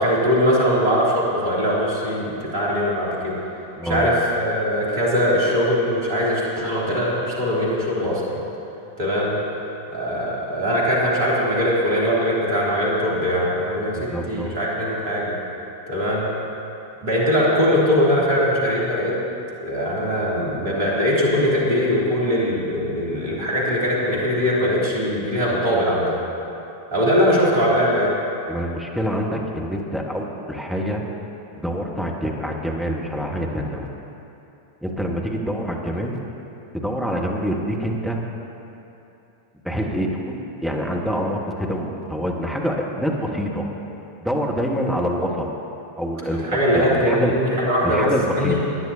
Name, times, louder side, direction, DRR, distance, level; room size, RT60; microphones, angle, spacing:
voice 1, 0.0-3.4 3.8-8.4 9.0-9.4 9.9-15.3 15.9-16.3 17.0-19.2 19.6-26.2 26.9-28.2 46.3-48.1 48.4-48.6, equal, 50° right, -5 dB, 3.0 m, -21 dB
voice 2, 3.8-4.1 13.9-14.6 28.5-31.0 31.6-33.9 34.8-36.2 36.7-38.2 39.6-43.6 44.2-45.4 46.0-47.3 47.8-48.6, equal, ahead, -1 dB, 1.5 m, -26 dB
21.5 x 10.0 x 2.8 m, 2.8 s
figure-of-eight pair, 90°, 0 cm